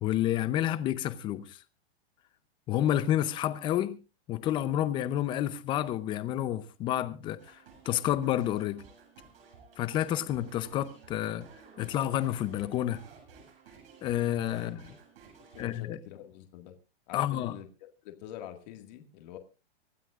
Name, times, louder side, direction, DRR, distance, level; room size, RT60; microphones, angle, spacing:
voice 1, 0.0-1.6 2.7-4.0 4.3-7.6 7.9-8.8 9.8-11.5 11.8-13.0 14.0-14.8 15.6-16.0 17.1-17.5, left 12 dB, 15° left, 0.6 m, -29 dB
sound 1, 7.4-15.8, right 5 dB, 65° right, 7.7 m, -55 dB
voice 2, 15.5-16.8 17.1-17.7 18.0-19.4, left 11 dB, 45° left, 1.9 m, -45 dB
25.0 x 12.5 x 2.4 m
supercardioid pair, 160°, 31 cm